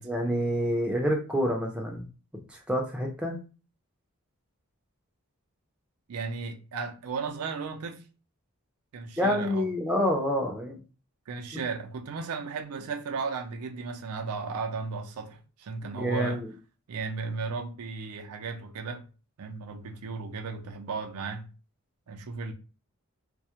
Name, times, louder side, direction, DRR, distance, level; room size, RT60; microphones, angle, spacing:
voice 1, 0.0-2.1 2.3-3.4 9.2-10.8 11.5-11.6 15.8-16.5, equal, 5° right, 0.4 m, -28 dB
voice 2, 6.1-8.0 8.9-9.7 11.3-16.4 16.9-19.0 19.4-21.5 22.1-22.5, right 4 dB, 80° right, 0.4 m, -35 dB
2.2 x 2.0 x 2.8 m
head